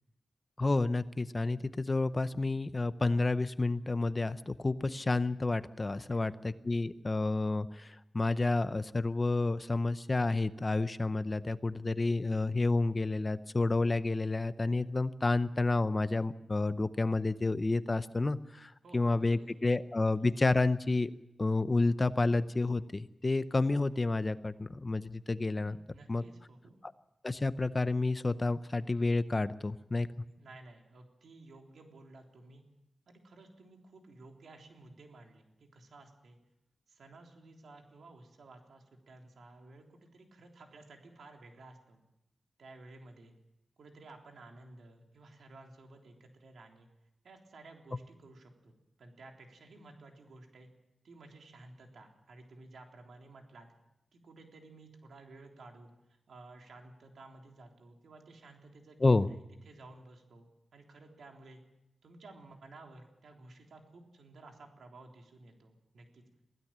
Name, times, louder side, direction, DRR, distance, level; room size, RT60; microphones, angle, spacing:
voice 1, 0.6-21.1 21.4-25.8 26.1-26.2 27.2-30.1 59.0-59.3, left 3 dB, 25° left, 13 dB, 0.7 m, -30 dB
voice 2, 6.0-6.4 18.8-19.7 20.0-20.1 25.6-26.8 30.3-32.6 33.1-36.4 36.9-42.0 42.6-43.3 43.8-46.9 47.2-48.7 49.0-50.7 51.0-53.7 54.1-55.9 56.3-61.6 62.0-66.2, right 2 dB, 80° right, 2 dB, 3.5 m, -54 dB
23.0 x 16.5 x 7.5 m, 0.89 s
wide cardioid pair, 120°, 0 cm